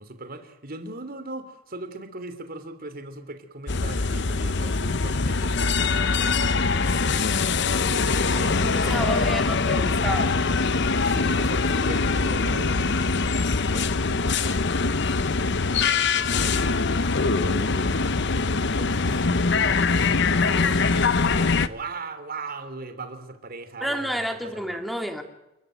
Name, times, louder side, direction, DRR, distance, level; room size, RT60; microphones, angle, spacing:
voice 1, 0.0-9.3 11.0-13.3 13.7-14.6 15.6-24.8, right 2 dB, 45° right, 9 dB, 3.2 m, -39 dB
sound 1, 3.7-21.7, left 4 dB, 60° left, 1.0 m, -23 dB
voice 2, 8.6-10.4 20.3-20.7 23.8-25.2, equal, ahead, 4 dB, 2.8 m, -30 dB
29.0 x 14.5 x 9.2 m, 0.94 s
head